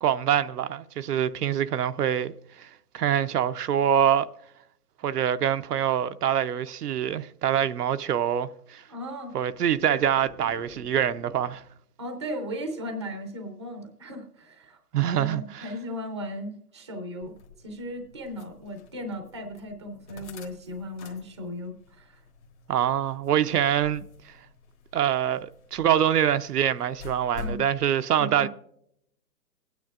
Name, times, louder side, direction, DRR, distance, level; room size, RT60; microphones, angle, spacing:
voice 1, 0.0-2.3 2.6-4.3 5.0-8.8 9.3-11.6 14.9-15.6 22.7-24.0 24.9-28.5, right 9 dB, 75° right, 0.6 m, -25 dB
voice 2, 8.9-9.3 12.0-14.8 15.1-17.3 17.6-22.2 27.4-27.6 28.2-28.5, equal, 20° right, 0.5 m, -36 dB
sound 1, 9.3-11.8, left 4 dB, 60° left, 2.0 m, -50 dB
sound 2, 17.2-27.7, left 5 dB, 45° left, 1.4 m, -46 dB
21.5 x 9.3 x 2.4 m
hypercardioid pair, 160°, 48 cm